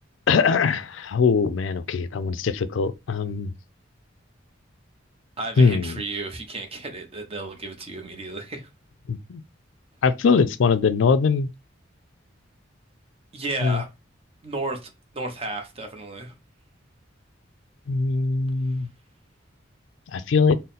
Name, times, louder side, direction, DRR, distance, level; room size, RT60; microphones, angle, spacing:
voice 1, 0.3-3.5 5.6-6.0 9.1-9.4 10.0-11.5 13.6-13.8 17.9-18.9 20.1-20.6, left 5 dB, 75° left, 0.4 m, -21 dB
voice 2, 5.4-8.7 13.3-13.9 14.4-16.3, right 2 dB, 30° right, 0.8 m, -33 dB
3.8 x 2.0 x 4.0 m
head